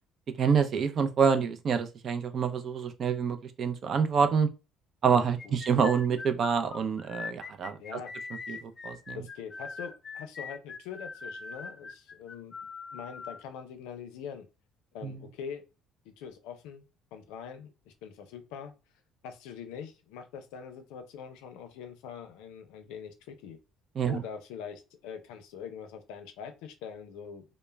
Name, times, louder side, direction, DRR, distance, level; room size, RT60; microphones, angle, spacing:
voice 1, 0.4-4.5 5.0-8.0 8.5-9.2 15.0-15.3 24.0-24.2, right 6 dB, 50° right, 0.4 m, -27 dB
voice 2, 5.1-5.6 7.8-8.1 8.5-8.6 9.1-12.5 12.9-14.5 14.9-15.6 16.0-16.9 17.1-18.7 19.2-23.6 24.1-27.4, left 7 dB, 90° left, 0.5 m, -43 dB
sound 1, 5.4-13.4, left 4 dB, 35° left, 0.4 m, -41 dB
2.2 x 2.1 x 3.2 m
cardioid pair, 95°, 0 cm